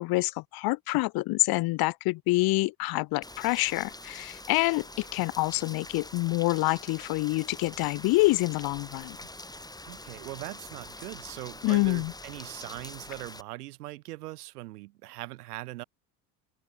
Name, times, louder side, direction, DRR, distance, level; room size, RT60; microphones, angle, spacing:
voice 1, 0.0-9.2 11.6-12.1, left 22 dB, 55° left, 0.6 m, -27 dB
Rain, 3.2-13.4, left 2 dB, 10° left, 5.6 m, -45 dB
sound 1, 7.3-13.0, right 4 dB, 20° right, 6.0 m, -60 dB
voice 2, 9.9-15.8, right 18 dB, 85° right, 2.3 m, -41 dB
hypercardioid pair, 75°, 45 cm